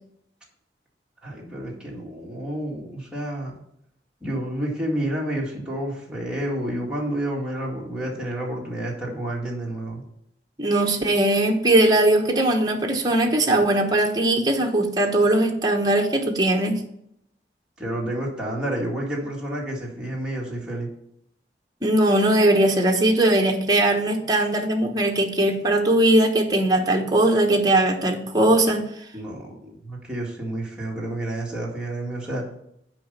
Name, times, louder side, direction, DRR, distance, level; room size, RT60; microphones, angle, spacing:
voice 1, 1.2-3.6 4.2-10.0 17.8-20.9 29.1-32.4, right 1 dB, 5° right, -5 dB, 2.0 m, -30 dB
voice 2, 10.6-16.8 21.8-28.8, right 1 dB, 20° right, 1 dB, 1.1 m, -20 dB
7.7 x 4.9 x 6.7 m, 0.75 s
head